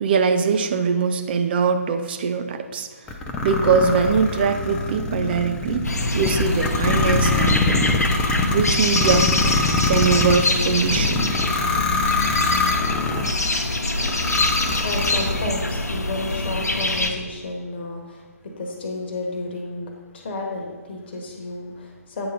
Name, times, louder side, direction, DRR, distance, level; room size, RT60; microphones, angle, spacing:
voice 1, 0.0-2.9 3.4-5.9 6.1-7.9 8.5-9.3 9.9-11.3, right 5 dB, 40° right, 8 dB, 0.5 m, -22 dB
sound 1, 3.1-13.4 14.0-15.6, left 3 dB, 10° left, 0.5 m, -24 dB
sound 2, 5.8-17.1, left 2 dB, 85° left, 0.8 m, -24 dB
voice 2, 14.8-22.3, left 2 dB, 40° left, 1 dB, 1.3 m, -32 dB
8.7 x 3.9 x 5.7 m, 1.4 s
figure-of-eight pair, 140°, 9 cm